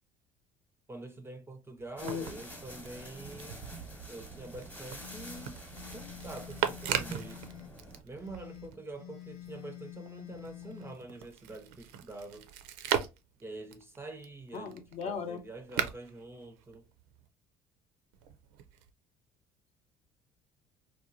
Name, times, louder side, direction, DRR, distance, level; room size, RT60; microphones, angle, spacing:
voice 1, 0.9-3.6 4.1-5.6 5.9-7.5 8.0-12.5 13.4-16.8, right 2 dB, 20° right, 0.5 m, -46 dB
sound 1, 1.8-8.8 9.1-17.3 18.1-18.9, right 10 dB, 90° right, 0.4 m, -39 dB
voice 2, 2.0-2.4 14.5-15.4, left 6 dB, 55° left, 0.6 m, -37 dB
sound 2, 2.0-8.0, equal, 15° left, 0.9 m, -47 dB
sound 3, 4.9-7.7 8.2-11.0, left 15 dB, 80° left, 1.1 m, -48 dB
2.9 x 2.2 x 2.5 m
supercardioid pair, 85°, 13 cm